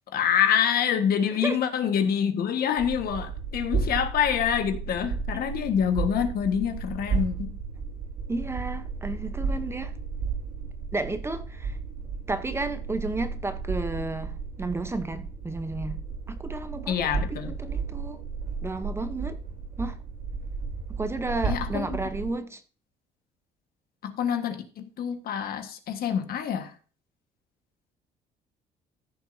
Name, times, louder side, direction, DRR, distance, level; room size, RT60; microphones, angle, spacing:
voice 1, 0.1-7.5 16.9-17.5 21.4-22.0 24.0-26.7, left 8 dB, 65° left, 1.5 m, -26 dB
sound 1, 2.8-22.3, right 5 dB, 60° right, 3.2 m, -33 dB
voice 2, 8.3-10.0 10.9-11.8 12.3-14.3 14.6-16.0 16.3-18.2 18.6-19.4 19.8-20.0 21.0-22.6, right 2 dB, 15° right, 0.8 m, -32 dB
15.0 x 6.6 x 2.7 m
cardioid pair, 110°, 17 cm